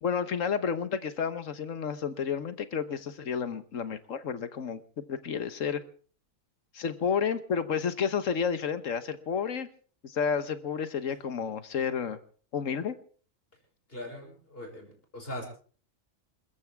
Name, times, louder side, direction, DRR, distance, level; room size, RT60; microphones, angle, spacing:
voice 1, 0.0-4.8 5.1-5.8 6.7-9.7 10.0-12.2 12.5-12.9, left 6 dB, 75° left, 12 dB, 1.5 m, -31 dB
voice 2, 13.9-15.5, left 1 dB, 45° left, 1 dB, 6.1 m, -40 dB
26.5 x 14.5 x 3.5 m, 0.42 s
omnidirectional pair, 1.4 m